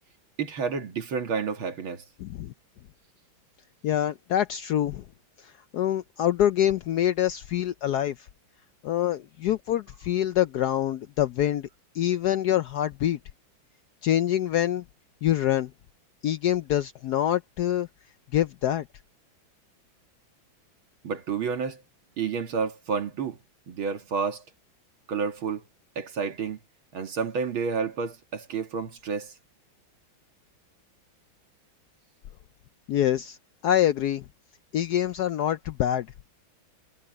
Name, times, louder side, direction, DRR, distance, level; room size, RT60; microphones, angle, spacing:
voice 1, 0.4-2.0 21.0-21.8 22.2-23.4 23.7-24.4 25.1-25.6 26.0-26.6 26.9-29.3, right 5 dB, 85° right, 2.8 m, -30 dB
voice 2, 2.2-2.5 3.8-5.0 5.4-8.3 8.8-11.7 11.9-13.2 14.0-14.8 15.2-15.7 16.2-17.9 18.3-18.8 32.9-33.4 33.6-34.2 34.7-36.1, left 11 dB, 70° left, 1.0 m, -25 dB
omnidirectional pair, 2.2 m